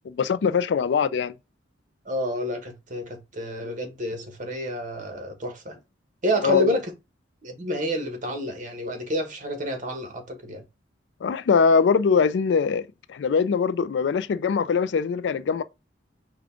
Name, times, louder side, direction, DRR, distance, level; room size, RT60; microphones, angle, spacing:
voice 1, 0.1-1.3 3.6-3.8 6.4-6.8 11.2-15.6, left 5 dB, 75° left, 0.4 m, -22 dB
voice 2, 2.1-5.8 6.2-6.8 7.4-10.6, equal, 45° right, 1.2 m, -29 dB
5.0 x 2.3 x 3.6 m
head